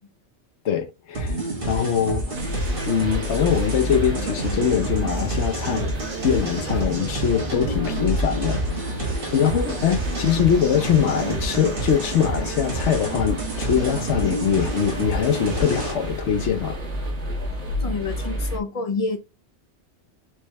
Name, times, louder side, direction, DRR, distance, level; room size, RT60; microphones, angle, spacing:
voice 1, 0.6-2.4 2.9-5.9 6.2-9.1 9.3-16.8, left 8 dB, 85° left, 1.1 m, -23 dB
sound 1, 1.1-15.9, right 2 dB, 50° right, 1.9 m, -29 dB
sound 2, 2.3-18.6, equal, 85° right, 1.5 m, -31 dB
voice 2, 17.8-19.2, left 3 dB, 35° left, 0.8 m, -28 dB
4.9 x 3.3 x 3.1 m
omnidirectional pair, 1.2 m